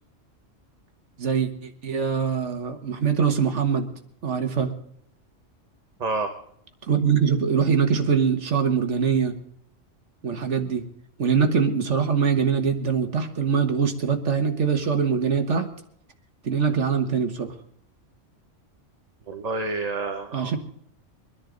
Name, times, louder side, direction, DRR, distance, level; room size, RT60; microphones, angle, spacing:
voice 1, 1.2-3.9 4.2-4.7 6.9-9.3 10.2-10.8 11.2-15.7 16.4-17.5 20.3-20.6, right 6 dB, 70° right, 6 dB, 1.6 m, -23 dB
voice 2, 6.0-6.3 19.3-20.6, right 3 dB, 35° right, 4 dB, 1.1 m, -28 dB
23.5 x 10.5 x 3.9 m, 0.70 s
omnidirectional pair, 1.3 m